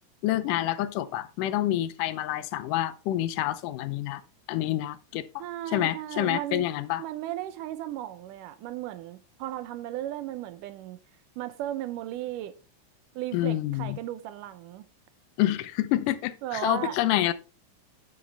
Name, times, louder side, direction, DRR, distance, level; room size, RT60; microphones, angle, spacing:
voice 1, 0.2-4.2 4.5-5.4 5.7-7.0 13.3-14.0 15.4-17.3, left 14 dB, 90° left, 2.3 m, -28 dB
voice 2, 5.4-6.7 7.0-11.0 11.4-12.6 13.2-14.9 16.4-17.0, right 13 dB, 85° right, 2.3 m, -35 dB
9.8 x 7.2 x 3.3 m
omnidirectional pair, 3.6 m